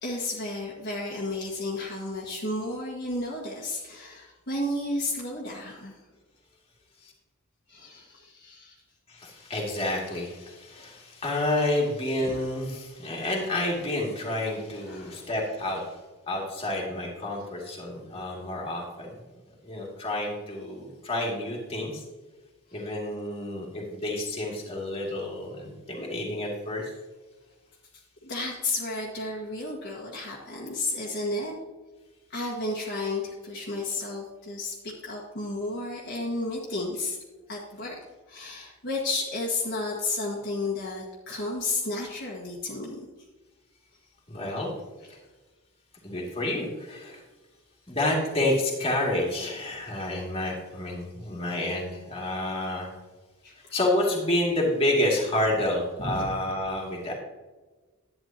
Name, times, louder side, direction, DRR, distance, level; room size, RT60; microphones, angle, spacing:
voice 1, 0.0-6.0 7.7-8.8 12.2-12.4 14.9-15.2 28.2-31.5 32.3-37.2 37.5-38.0 38.3-43.0 53.4-53.7 56.0-56.3, left 2 dB, 50° left, -5 dB, 1.7 m, -32 dB
voice 2, 9.1-15.9 16.3-19.1 19.6-22.0 22.7-26.9 44.3-44.7 46.0-47.2 47.9-52.9 53.6-57.1, left 1 dB, 25° left, -3 dB, 2.4 m, -29 dB
11.5 x 9.2 x 2.9 m, 1.2 s
head